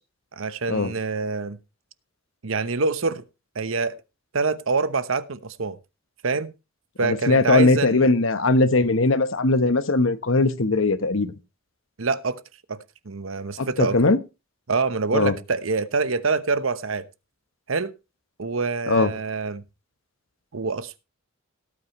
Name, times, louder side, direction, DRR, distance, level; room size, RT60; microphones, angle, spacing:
voice 1, 0.3-1.6 2.4-3.2 3.5-4.0 4.3-5.8 6.2-6.5 7.0-8.1 12.0-12.4 12.7-14.0 14.7-17.0 17.7-17.9 18.4-19.6 20.5-21.0, right 4 dB, 70° right, 0.9 m, -26 dB
voice 2, 7.0-11.4 13.6-14.2 15.1-15.3 18.9-19.1, left 3 dB, 65° left, 1.1 m, -20 dB
17.5 x 8.6 x 3.1 m
head